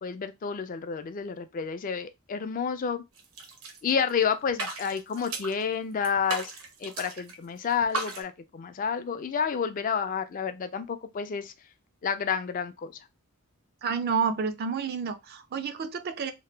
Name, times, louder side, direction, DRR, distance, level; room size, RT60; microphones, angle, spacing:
voice 1, 0.0-3.0 3.8-6.5 6.8-11.5 12.0-12.9, left 6 dB, 40° left, 0.3 m, -30 dB
sound 1, 3.2-4.2 4.5-5.6 6.0-7.4 7.6-8.2, right 2 dB, 90° right, 0.8 m, -36 dB
voice 2, 13.8-16.3, right 6 dB, 45° right, 0.3 m, -29 dB
2.8 x 2.2 x 3.2 m
head